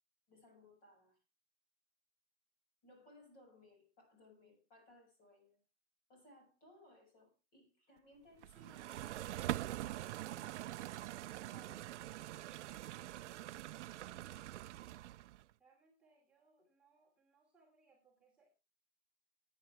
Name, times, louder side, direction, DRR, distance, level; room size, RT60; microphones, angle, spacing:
voice 1, 0.3-1.2 2.8-5.6 6.1-10.7 11.5-11.9, left 1 dB, 25° left, 3 dB, 6.3 m, -64 dB
sound 1, 8.4-15.4, right 14 dB, 85° right, 0.6 m, -44 dB
voice 2, 15.6-18.5, right 3 dB, 5° right, -7 dB, 2.9 m, -71 dB
18.5 x 9.9 x 3.4 m, 0.29 s
supercardioid pair, 165°, 35 cm